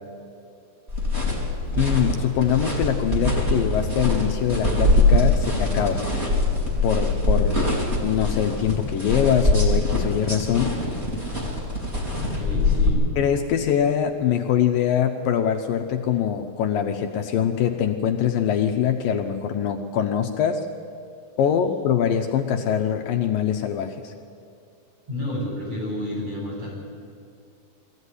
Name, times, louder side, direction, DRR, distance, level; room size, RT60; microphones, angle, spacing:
sound 1, 0.9-12.9, left 2 dB, 15° right, 3.8 m, -23 dB
voice 1, 1.7-6.0 6.8-7.7 8.0-10.8 13.2-20.7 21.4-24.1, left 9 dB, 75° left, 4 dB, 2.3 m, -23 dB
voice 2, 12.2-13.0 25.1-26.8, left 1 dB, 40° right, -4 dB, 8.3 m, -30 dB
22.0 x 15.0 x 9.8 m, 2.5 s
omnidirectional pair, 4.6 m